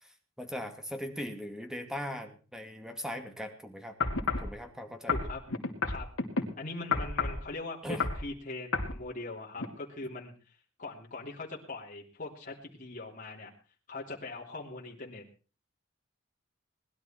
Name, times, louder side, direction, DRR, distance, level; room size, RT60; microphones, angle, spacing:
voice 1, 0.0-4.0 4.4-5.1 6.9-7.1 7.8-8.0, equal, 5° right, 6 dB, 2.2 m, -40 dB
sound 1, 4.0-4.5 5.1-6.4 6.9-7.4 7.9-8.2 8.7-8.9 9.6-9.7, left 4 dB, 70° left, 2.7 m, -30 dB
voice 2, 5.1-5.4 5.8-6.1 6.6-10.5 10.8-13.5 13.9-15.2, left 2 dB, 40° left, -3 dB, 3.3 m, -41 dB
20.5 x 12.0 x 4.5 m, 0.36 s
head